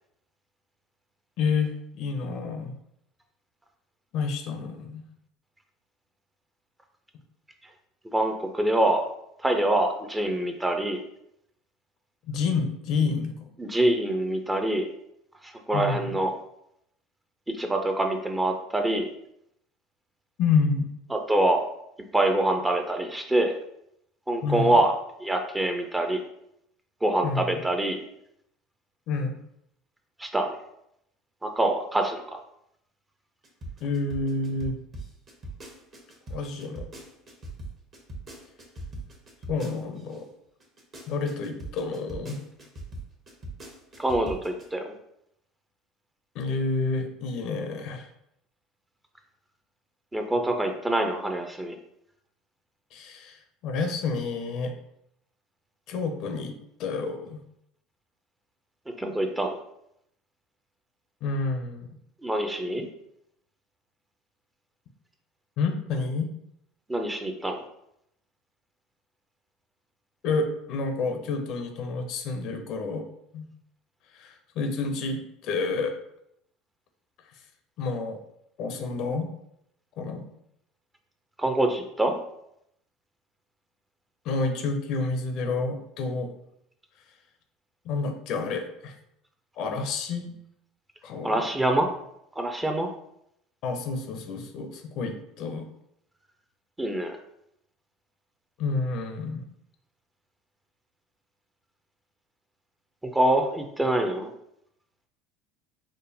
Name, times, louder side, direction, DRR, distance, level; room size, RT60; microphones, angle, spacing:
voice 1, 1.4-2.7 4.1-5.0 12.3-13.5 15.7-16.1 20.4-20.9 24.4-24.7 27.2-27.5 29.1-29.3 33.8-34.8 36.3-36.9 39.5-40.3 41.1-42.4 46.3-48.1 52.9-54.7 55.9-57.4 61.2-61.9 65.6-66.3 70.2-73.1 73.3-73.5 74.1-75.9 77.8-78.2 78.6-79.3 80.0-80.3 84.2-86.3 87.8-88.9 89.6-90.3 91.0-91.4 93.6-95.7 98.6-99.4, left 4 dB, 55° left, 5 dB, 0.5 m, -29 dB
voice 2, 8.0-9.1 9.4-11.0 13.6-14.9 15.4-16.3 17.5-19.1 21.1-21.6 22.1-23.5 24.3-24.9 25.2-26.2 27.0-28.0 30.2-30.6 31.4-32.4 44.0-44.9 50.1-51.8 58.9-59.6 62.2-62.9 66.9-67.6 81.4-82.1 91.2-91.9 92.4-92.9 96.8-97.2 103.0-104.3, right 1 dB, 10° right, 4 dB, 0.5 m, -25 dB
sound 1, 33.4-40.2 40.6-44.6, right 2 dB, 35° right, 1.0 m, -40 dB
5.0 x 2.1 x 2.6 m, 0.76 s
hypercardioid pair, 70°, 0 cm